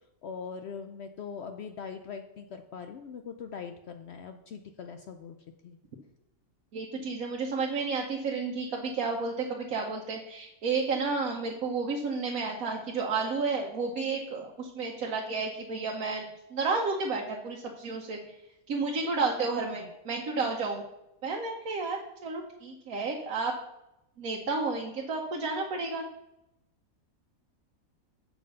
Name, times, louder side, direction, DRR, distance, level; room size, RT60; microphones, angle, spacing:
voice 1, 0.2-5.4 5.6-5.8, left 6 dB, 60° left, 7 dB, 0.7 m, -41 dB
voice 2, 6.7-18.3 18.7-20.8 21.2-23.5 24.2-26.0, right 4 dB, 85° right, 0 dB, 1.4 m, -31 dB
7.5 x 5.9 x 5.4 m, 0.87 s
omnidirectional pair, 1.4 m